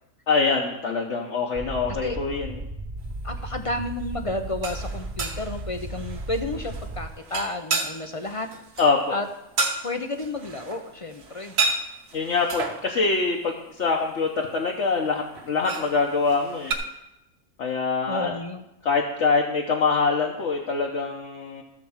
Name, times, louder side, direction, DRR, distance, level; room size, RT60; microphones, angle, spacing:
voice 1, 0.3-2.5 8.8-9.0 12.1-16.7 17.6-18.4 18.8-21.6, left 4 dB, 60° left, -1 dB, 1.3 m, -24 dB
sound 1, 1.5-7.1, right 2 dB, 40° right, 1.2 m, -35 dB
voice 2, 3.2-8.5 9.1-9.3 9.8-11.6 18.1-18.6, left 2 dB, 45° left, 7 dB, 0.4 m, -31 dB
sound 2, 3.3-3.7 4.4-12.9 15.3-16.7, right 3 dB, 55° right, 1.3 m, -31 dB
13.5 x 4.5 x 7.2 m, 0.90 s
omnidirectional pair, 1.4 m